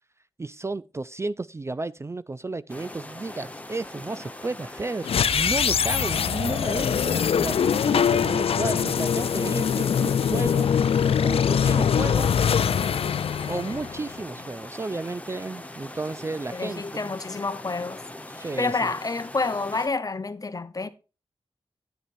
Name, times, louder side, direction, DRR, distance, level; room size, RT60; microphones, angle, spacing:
voice 1, 0.4-12.4 13.5-17.1 18.3-18.9, right 3 dB, 30° right, 0.3 m, -33 dB
sound 1, 2.7-19.9, left 1 dB, 15° left, 1.1 m, -41 dB
sound 2, 5.0-14.3, left 7 dB, 85° left, 0.4 m, -23 dB
voice 2, 16.5-18.0 18.4-20.9, left 3 dB, 40° left, 0.8 m, -29 dB
9.9 x 9.0 x 2.6 m
wide cardioid pair, 80°, 10 cm